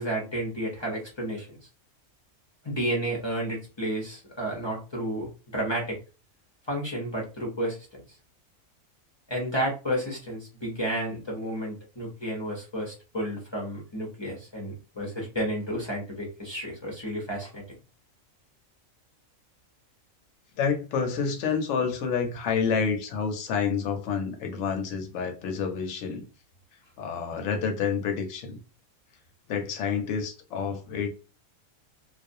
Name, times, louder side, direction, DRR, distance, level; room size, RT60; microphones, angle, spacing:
voice 1, 0.0-1.6 2.6-6.0 6.7-8.0 9.3-17.6, right 1 dB, 30° left, 0.6 m, -31 dB
voice 2, 20.6-26.3 27.0-28.6 29.5-31.1, left 6 dB, 70° left, 0.9 m, -28 dB
2.4 x 2.2 x 2.6 m
omnidirectional pair, 1.5 m